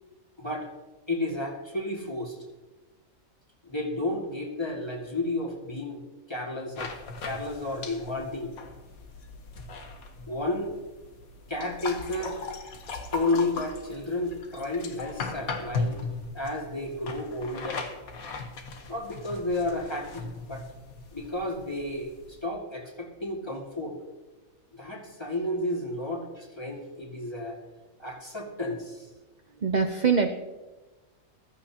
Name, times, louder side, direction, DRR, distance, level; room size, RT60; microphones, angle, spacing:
voice 1, 0.4-0.7 1.1-2.4 3.6-6.0 6.3-8.6 10.3-10.8 11.5-12.4 13.1-16.0 16.3-17.8 18.9-20.6 21.1-24.0 24.7-27.6 28.0-29.1, left 2 dB, 20° left, 0 dB, 2.0 m, -32 dB
sound 1, 6.8-22.4, left 4 dB, 80° left, 1.6 m, -38 dB
voice 2, 29.6-30.3, right 5 dB, 45° right, 6 dB, 0.6 m, -23 dB
15.0 x 13.5 x 2.9 m, 1.2 s
omnidirectional pair, 1.5 m